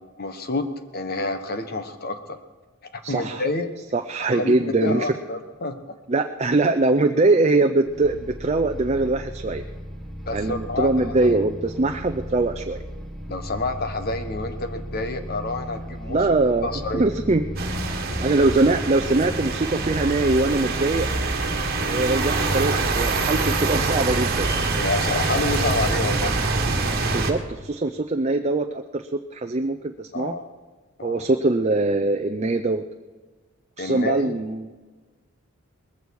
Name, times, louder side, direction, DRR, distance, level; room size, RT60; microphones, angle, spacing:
voice 1, 0.2-2.4 3.1-3.7 4.3-5.8 10.3-11.4 13.3-16.3 16.6-17.0 24.8-26.3 30.1-30.5 31.0-31.2 33.8-34.4, left 2 dB, 50° left, 8 dB, 1.3 m, -28 dB
voice 2, 3.0-3.4 3.9-5.1 6.1-9.6 10.3-12.8 16.1-16.7 16.9-17.4 18.2-21.1 21.9-24.5 27.1-30.3 31.0-32.8 33.8-34.7, right 2 dB, 30° right, 6 dB, 0.6 m, -22 dB
sound 1, 7.8-27.4, equal, ahead, 1.8 m, -35 dB
sound 2, 17.6-27.3, right 3 dB, 50° right, 1.7 m, -25 dB
20.0 x 15.5 x 4.8 m, 1.3 s
head